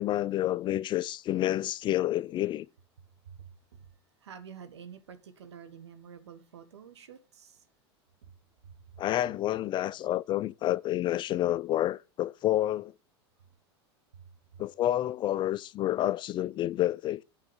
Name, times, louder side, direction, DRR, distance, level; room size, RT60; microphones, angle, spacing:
voice 1, 0.0-2.7 9.0-12.9 14.6-17.2, left 13 dB, 35° left, 0.4 m, -29 dB
voice 2, 3.3-3.9 4.2-7.6 8.2-8.3 8.6-9.0, right 7 dB, 85° right, 1.5 m, -49 dB
9.2 x 4.8 x 7.4 m
hypercardioid pair, 100°, 14 cm